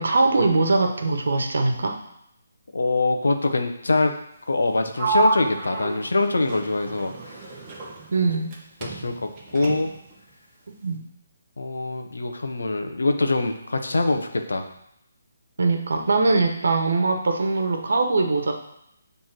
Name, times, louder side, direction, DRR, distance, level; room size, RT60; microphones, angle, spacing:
voice 1, 0.0-2.0 8.1-8.5 10.7-11.0 15.6-18.5, right 3 dB, 75° right, 4 dB, 1.2 m, -22 dB
voice 2, 2.7-4.1 4.5-7.4 8.8-9.9 11.6-14.6, left 2 dB, 85° left, 6 dB, 1.0 m, -24 dB
Sliding door, 5.0-8.6 8.8-10.1, right 3 dB, 20° right, 1.3 m, -29 dB
6.7 x 3.6 x 6.1 m, 0.77 s
hypercardioid pair, 160°, 0 cm